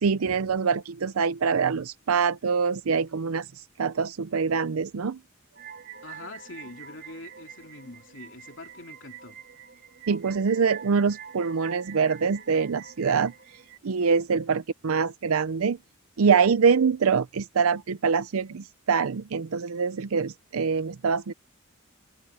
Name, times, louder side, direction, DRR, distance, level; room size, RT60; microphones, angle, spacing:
voice 1, 0.0-3.5 3.8-5.2 10.1-13.3 13.8-15.8 16.2-21.3, right 5 dB, 85° right, 0.5 m, -24 dB
sound 1, 5.6-13.8, right 8 dB, 50° right, 4.1 m, -45 dB
voice 2, 6.0-9.4, left 2 dB, 60° left, 2.8 m, -44 dB
head